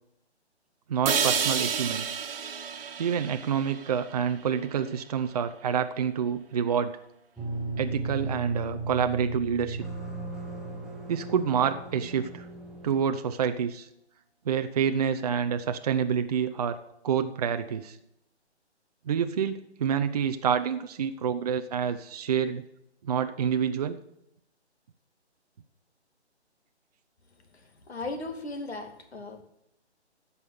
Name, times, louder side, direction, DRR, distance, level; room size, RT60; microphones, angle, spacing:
voice 1, 0.9-2.1 3.0-7.0 7.8-9.9 11.1-12.5 12.8-13.9 14.5-18.0 19.1-22.6 23.0-24.0, right 7 dB, 35° right, 8 dB, 0.6 m, -28 dB
sound 1, 1.1-5.1, right 6 dB, 55° right, 1.5 m, -31 dB
sound 2, 7.4-13.0, right 2 dB, ahead, 1.0 m, -35 dB
voice 2, 27.9-29.4, left 2 dB, 65° left, 6 dB, 2.4 m, -37 dB
15.0 x 5.7 x 8.4 m, 0.79 s
figure-of-eight pair, 145°, 34 cm